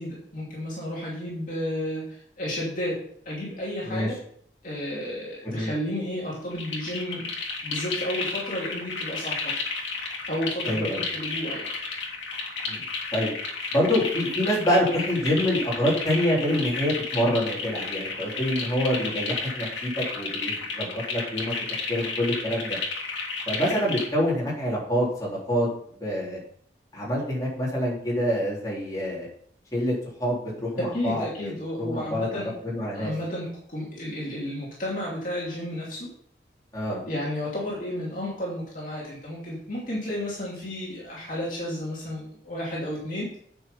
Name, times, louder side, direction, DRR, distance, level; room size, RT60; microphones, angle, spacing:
voice 1, 0.0-3.0 3.2-4.2 4.6-7.3 7.6-9.5 10.3-11.7 30.8-32.5 32.9-36.1 37.1-43.3, left 1 dB, 45° left, -5 dB, 2.8 m, -32 dB
sound 1, 6.5-24.1, left 4 dB, 90° left, 2.6 m, -32 dB
voice 2, 10.7-11.0 12.7-12.8 13.1-13.3 13.7-21.5 21.9-22.8 23.5-25.7 26.0-26.4 26.9-29.3 29.7-29.9 30.2-33.1 36.7-37.0, equal, 20° left, -6 dB, 3.8 m, -26 dB
8.9 x 6.4 x 5.5 m, 0.63 s
head